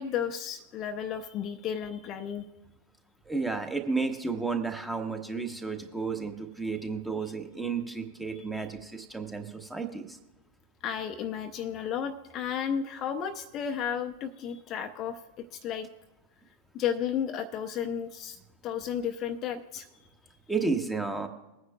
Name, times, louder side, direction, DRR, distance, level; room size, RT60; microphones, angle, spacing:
voice 1, 0.0-2.4 10.8-15.9 16.7-19.9, left 8 dB, 35° left, 6 dB, 0.5 m, -33 dB
voice 2, 3.3-10.2 20.5-21.3, right 4 dB, 5° right, 6 dB, 1.0 m, -32 dB
21.5 x 9.4 x 2.2 m, 1.0 s
figure-of-eight pair, 90°, 0 cm